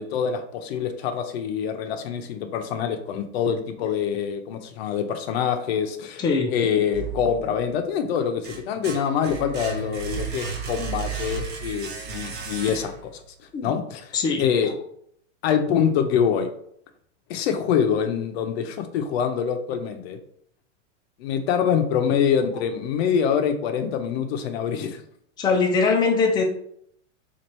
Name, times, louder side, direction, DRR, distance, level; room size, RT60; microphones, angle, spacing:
voice 1, 0.0-6.2 6.5-13.0 13.6-14.1 14.4-14.7 15.4-16.5 17.3-20.2 21.2-25.0, left 7 dB, 55° left, 8 dB, 0.6 m, -25 dB
voice 2, 6.2-6.5 13.5-13.8 14.1-14.5 25.4-26.4, left 4 dB, 10° left, 1 dB, 0.4 m, -21 dB
sound 1, 6.9-7.8 8.2-13.2, right 6 dB, 30° right, 0.6 m, -34 dB
3.1 x 2.5 x 4.2 m, 0.68 s
hypercardioid pair, 130°, 38 cm